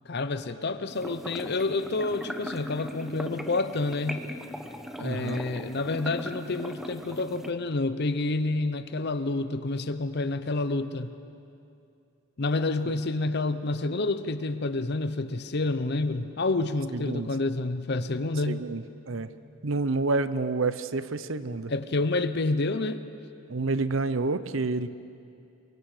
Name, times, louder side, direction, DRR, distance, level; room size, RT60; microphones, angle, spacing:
voice 1, 0.1-4.2 5.0-11.1 12.4-18.7 21.7-23.0, left 2 dB, 50° left, 12 dB, 0.7 m, -28 dB
sound 1, 0.9-7.5, equal, ahead, 0.9 m, -39 dB
voice 2, 5.0-5.4 16.9-17.3 18.5-19.3 19.6-21.7 23.5-24.9, right 3 dB, 65° right, 14 dB, 0.7 m, -29 dB
23.5 x 23.0 x 4.9 m, 2.6 s
head